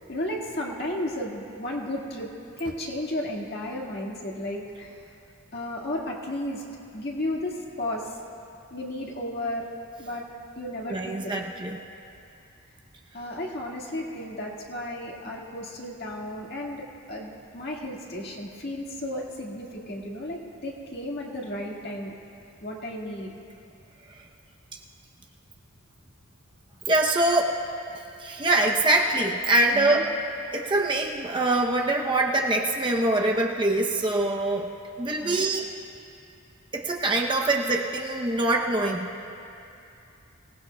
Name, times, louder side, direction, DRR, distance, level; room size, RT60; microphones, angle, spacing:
voice 1, 0.1-2.3 2.6-5.0 5.5-6.6 6.9-8.2 8.7-9.7 10.0-10.2 10.6-11.3 13.1-22.2 22.6-23.3 29.7-30.0 35.2-35.5, left 1 dB, 45° left, -2 dB, 1.8 m, -33 dB
voice 2, 10.9-11.8 26.9-27.5 28.2-30.1 30.5-34.7 35.0-35.7 36.7-39.2, right 2 dB, 20° right, 1 dB, 0.7 m, -24 dB
25.5 x 17.5 x 2.3 m, 2.7 s
head